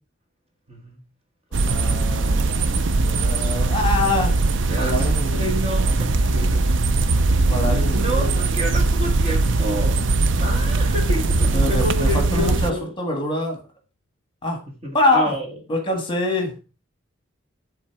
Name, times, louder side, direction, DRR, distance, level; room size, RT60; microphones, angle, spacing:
voice 1, 0.7-1.0 2.2-2.3 3.1-3.5 4.7-6.8 7.7-12.9 14.8-15.6, equal, 30° right, 2 dB, 1.7 m, -30 dB
sound 1, 1.5-12.7, right 3 dB, 60° right, 0.5 m, -20 dB
voice 2, 1.6-4.3 4.8-5.5 7.5-8.3 10.3-10.7 11.5-13.6 14.4-14.6 14.9-15.3 15.7-16.5, left 2 dB, 25° left, 3 dB, 1.5 m, -25 dB
10.0 x 3.9 x 4.6 m, 0.34 s
head